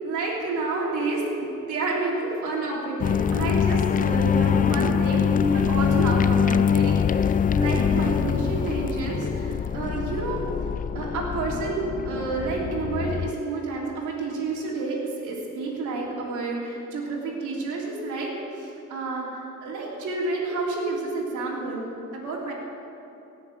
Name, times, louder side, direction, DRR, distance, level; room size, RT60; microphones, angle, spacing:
voice 1, 0.0-10.4 10.9-18.3 18.6-22.5, right 3 dB, 85° right, -3 dB, 3.4 m, -29 dB
sound 1, 3.0-13.3, left 7 dB, 30° left, 0.3 m, -23 dB
17.0 x 7.1 x 7.5 m, 2.8 s
cardioid pair, 90°, 30 cm